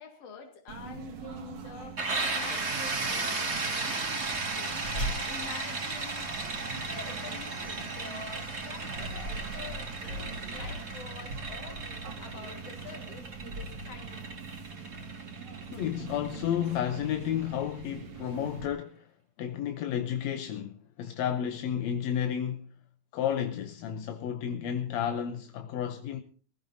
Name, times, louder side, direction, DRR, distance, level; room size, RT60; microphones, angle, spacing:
voice 1, 0.0-4.9 5.2-6.3 6.6-9.2 9.5-11.8 12.2-14.2, left 5 dB, 55° left, 2.9 m, -46 dB
sound 1, 0.7-18.7, right 4 dB, 65° right, 3.0 m, -42 dB
sound 2, 2.0-17.6, right 3 dB, 25° right, 1.7 m, -36 dB
sound 3, 4.0-12.5, right 1 dB, 40° left, 5.2 m, -43 dB
voice 2, 15.7-19.1 19.4-22.7 23.1-26.2, left 9 dB, 70° left, 1.9 m, -32 dB
22.5 x 15.5 x 2.7 m
omnidirectional pair, 3.6 m